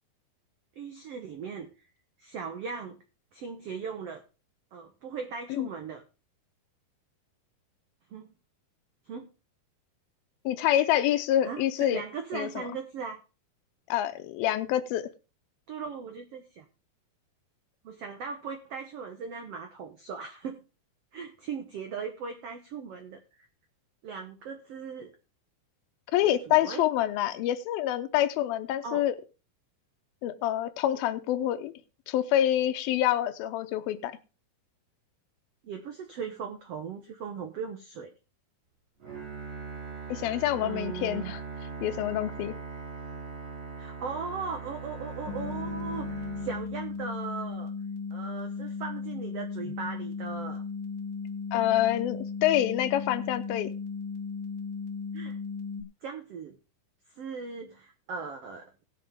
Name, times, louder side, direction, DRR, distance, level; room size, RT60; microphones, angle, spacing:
voice 1, 0.8-1.7 2.2-3.0 3.3-4.2 4.7-6.0 8.1-8.3 9.1-9.3 11.4-11.6 11.9-13.2 15.7-16.7 17.8-20.6 21.1-23.5 24.0-25.1 26.2-26.8 28.8-29.1 35.6-38.1 40.6-41.3 43.8-47.7 48.1-50.6 55.1-55.4 56.0-56.5 57.2-58.8, right 5 dB, 85° right, 5 dB, 1.3 m, -38 dB
voice 2, 10.5-12.0 12.3-12.7 13.9-15.1 26.1-29.2 30.2-31.7 32.1-34.2 40.1-41.4 41.8-42.5 51.5-53.7, left 12 dB, 80° left, 10 dB, 2.5 m, -27 dB
Bowed string instrument, 39.0-47.2, right 5 dB, 60° right, 7.2 m, -40 dB
sound 1, 45.3-55.8, left 5 dB, 65° left, 2.7 m, -36 dB
18.5 x 6.4 x 3.5 m, 0.32 s
omnidirectional pair, 4.4 m